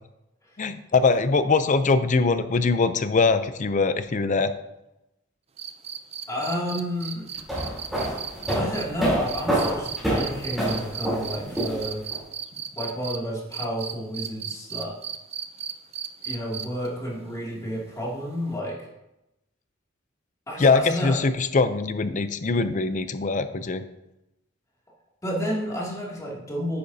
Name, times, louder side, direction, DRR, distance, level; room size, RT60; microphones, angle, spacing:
voice 1, 0.6-4.5 20.6-23.8, left 4 dB, 40° left, 11 dB, 0.5 m, -22 dB
sound 1, 5.6-13.2 13.5-16.9 18.5-18.6, right 8 dB, 30° right, 0.5 m, -35 dB
voice 2, 6.3-7.3 8.5-12.0 12.8-14.9 16.2-18.8 20.5-21.2 25.2-26.8, equal, 15° left, -5 dB, 2.5 m, -30 dB
sound 2, 7.3-12.2, right 1 dB, ahead, 3.5 m, -27 dB
10.0 x 8.7 x 2.8 m, 0.93 s
head